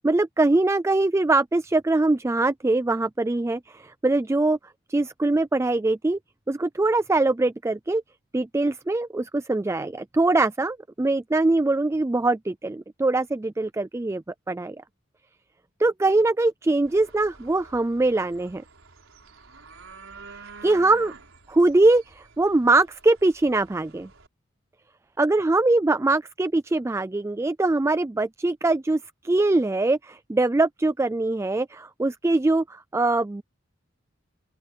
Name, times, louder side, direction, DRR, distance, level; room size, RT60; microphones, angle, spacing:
voice 1, 0.0-4.6 4.9-6.2 6.5-8.0 8.3-14.8 15.8-18.6 20.6-21.1 21.5-24.1 25.2-33.4, right 2 dB, 15° right, 0.3 m, -22 dB
sound 1, 16.8-24.3, right 4 dB, 90° right, 4.5 m, -48 dB
open air
head